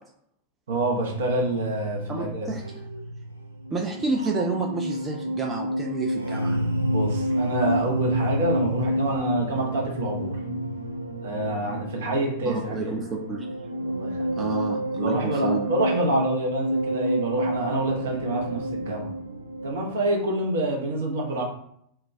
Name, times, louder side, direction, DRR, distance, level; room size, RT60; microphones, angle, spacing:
voice 1, 0.7-2.5 6.9-10.4 11.2-12.9 13.8-14.4 15.0-19.1 19.6-21.4, right 1 dB, 60° right, 0 dB, 0.7 m, -27 dB
sound 1, 1.1-19.9, right 1 dB, 85° right, 0.4 m, -29 dB
voice 2, 2.1-2.6 3.7-6.6 12.5-13.5 14.4-15.7, right 3 dB, 20° right, 0 dB, 0.3 m, -30 dB
2.2 x 2.2 x 3.1 m, 0.71 s
figure-of-eight pair, 90°, 0 cm